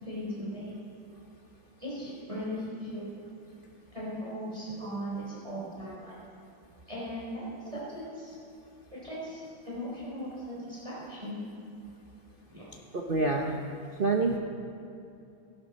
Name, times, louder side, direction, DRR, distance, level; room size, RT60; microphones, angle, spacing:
voice 1, 0.0-0.8 1.8-3.1 3.9-6.1 6.9-7.4 7.7-8.4 8.9-11.4 12.5-12.6, equal, 15° right, -7 dB, 3.7 m, -38 dB
voice 2, 13.1-13.6 14.0-14.4, right 3 dB, 60° right, 1 dB, 0.5 m, -27 dB
18.5 x 11.5 x 4.1 m, 2.6 s
omnidirectional pair, 2.2 m